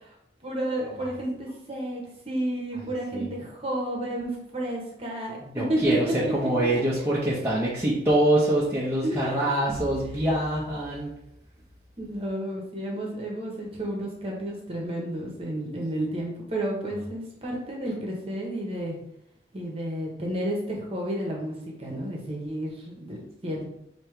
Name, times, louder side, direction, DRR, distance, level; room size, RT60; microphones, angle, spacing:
voice 1, 0.4-5.4 5.7-6.1 9.0-9.4 12.0-19.0 19.5-23.6, right 1 dB, 35° right, -2 dB, 1.0 m, -31 dB
voice 2, 5.4-11.1, right 1 dB, 15° right, -7 dB, 0.7 m, -25 dB
5.2 x 2.8 x 3.3 m, 0.77 s
head